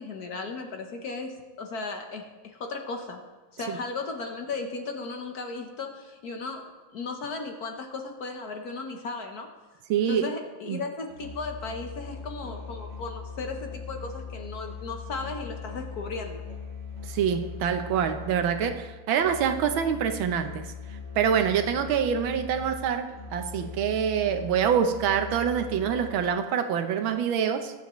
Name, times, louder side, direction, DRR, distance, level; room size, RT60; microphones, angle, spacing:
voice 1, 0.0-3.2 3.6-6.6 6.9-9.5 10.1-16.4, left 3 dB, 55° left, 4 dB, 1.3 m, -36 dB
voice 2, 9.9-10.3 10.7-10.8 17.0-20.7 21.1-27.7, right 8 dB, 75° right, 8 dB, 1.6 m, -26 dB
Musical instrument, 11.1-26.4, left 5 dB, 40° right, 3.6 m, -40 dB
21.5 x 7.3 x 3.1 m, 1.2 s
omnidirectional pair, 2.2 m